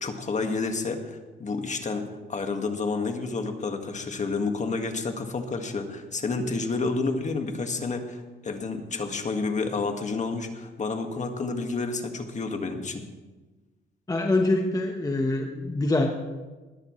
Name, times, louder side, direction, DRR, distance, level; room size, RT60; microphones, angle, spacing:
voice 1, 0.0-13.0, left 3 dB, 35° left, 5 dB, 1.8 m, -30 dB
voice 2, 14.1-16.1, left 2 dB, 20° left, 3 dB, 1.2 m, -24 dB
20.0 x 13.5 x 3.2 m, 1.2 s
cardioid pair, 90°, 20 cm